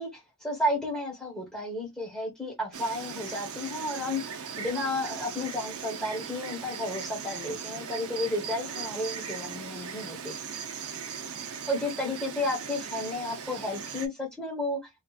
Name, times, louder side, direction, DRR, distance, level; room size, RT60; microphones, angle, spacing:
voice 1, 0.0-10.3 11.7-14.8, left 1 dB, 5° left, 1.2 m, -32 dB
Insect, 2.7-14.1, right 6 dB, 80° right, 0.6 m, -38 dB
3.0 x 2.7 x 2.4 m
head